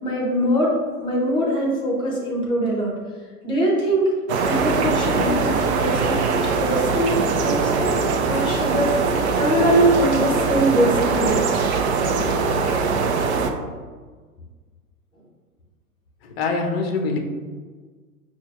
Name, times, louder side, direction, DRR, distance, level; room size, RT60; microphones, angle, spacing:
voice 1, 0.0-2.9 3.4-4.1 4.4-7.9 8.2-9.0 9.4-11.6, right 1 dB, 10° left, -4 dB, 0.8 m, -22 dB
sound 1, 4.3-13.5, right 4 dB, 50° right, 0.5 m, -22 dB
voice 2, 16.2-17.2, left 4 dB, 40° left, 4 dB, 0.6 m, -24 dB
6.1 x 2.4 x 2.8 m, 1.5 s
figure-of-eight pair, 105°, 45 cm